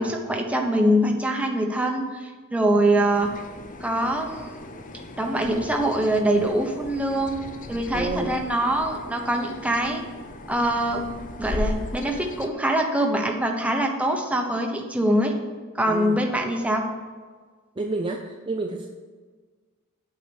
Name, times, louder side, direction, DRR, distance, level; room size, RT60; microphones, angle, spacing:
voice 1, 0.0-3.3 3.8-4.6 5.2-7.4 7.7-10.0 10.5-11.0 11.4-15.3 15.7-16.8, right 1 dB, 5° right, 2 dB, 1.0 m, -23 dB
sound 1, 3.1-12.5, left 2 dB, 40° left, 0.6 m, -37 dB
voice 2, 7.9-8.3 15.9-16.2 17.8-18.9, right 2 dB, 25° right, 2 dB, 0.5 m, -29 dB
8.4 x 4.6 x 7.1 m, 1.5 s
head